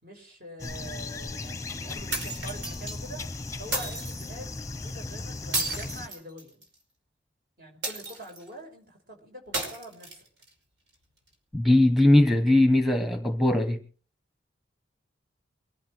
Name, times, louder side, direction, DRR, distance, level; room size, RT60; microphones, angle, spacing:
voice 1, 0.0-3.2 3.6-6.6 7.6-10.3, right 1 dB, 50° right, 5.1 m, -45 dB
sound 1, 0.6-6.1, left 3 dB, 15° left, 0.8 m, -37 dB
sound 2, 2.1-3.0 3.7-4.3 5.5-6.7 7.8-8.5 9.5-10.5, right 2 dB, 75° right, 5.2 m, -33 dB
voice 2, 11.5-13.8, left 1 dB, ahead, 1.2 m, -20 dB
23.0 x 12.0 x 4.7 m
head